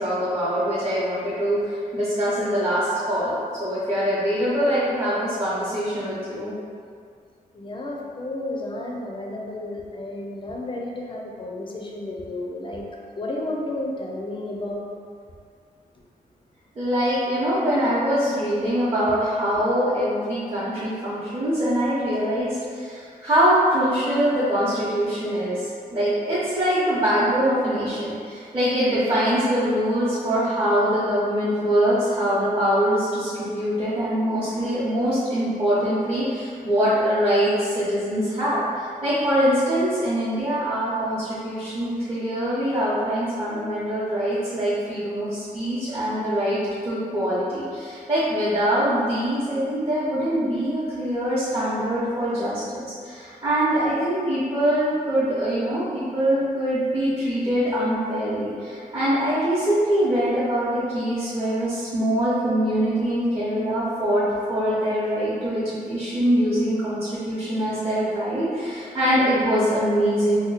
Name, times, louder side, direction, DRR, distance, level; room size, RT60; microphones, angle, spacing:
voice 1, 0.0-6.5 16.8-25.6 25.9-38.6 39.0-64.2 64.5-70.4, equal, 30° right, -12 dB, 0.8 m, -23 dB
voice 2, 7.5-12.8 13.2-14.9, left 1 dB, 35° left, -1 dB, 0.5 m, -32 dB
2.9 x 2.2 x 4.0 m, 2.2 s
wide cardioid pair, 120°, 15 cm